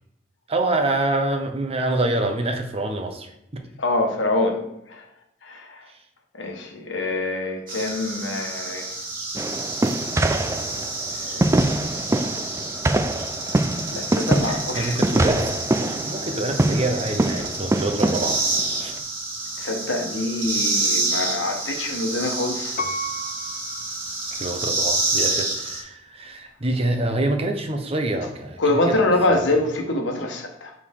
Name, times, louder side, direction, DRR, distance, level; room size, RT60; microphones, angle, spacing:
voice 1, 0.5-3.6 5.9-6.0 10.7-10.8 14.5-18.4 18.8-18.9 24.4-28.6 28.9-29.0, right 2 dB, 30° right, 4 dB, 0.8 m, -26 dB
voice 2, 3.8-5.1 5.4-5.9 6.3-9.0 11.1-12.3 13.9-15.0 19.6-22.8 28.6-30.7, left 2 dB, 80° left, 3 dB, 1.2 m, -25 dB
sound 1, 7.7-25.8, right 2 dB, 50° right, 1.6 m, -28 dB
sound 2, 9.4-19.0, right 1 dB, 15° right, 0.4 m, -24 dB
Piano, 22.8-24.8 25.3-25.4, equal, 50° left, 0.6 m, -33 dB
6.4 x 4.9 x 3.6 m, 0.81 s
head